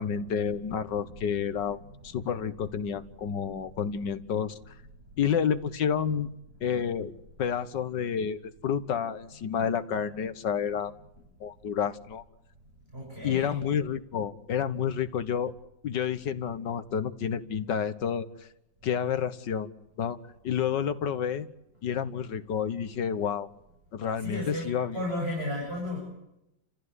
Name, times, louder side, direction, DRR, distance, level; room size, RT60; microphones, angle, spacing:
voice 1, 0.0-1.8 2.0-4.6 5.2-6.3 6.6-7.1 7.4-10.9 11.4-12.2 13.2-15.5 15.8-18.3 18.8-19.7 20.0-20.2 20.4-21.5 21.8-23.5 23.9-25.0, left 8 dB, 70° left, 12 dB, 1.9 m, -29 dB
voice 2, 12.9-13.5 24.2-26.0, left 1 dB, 30° right, -2 dB, 7.8 m, -34 dB
30.0 x 15.0 x 9.6 m, 0.88 s
omnidirectional pair, 2.0 m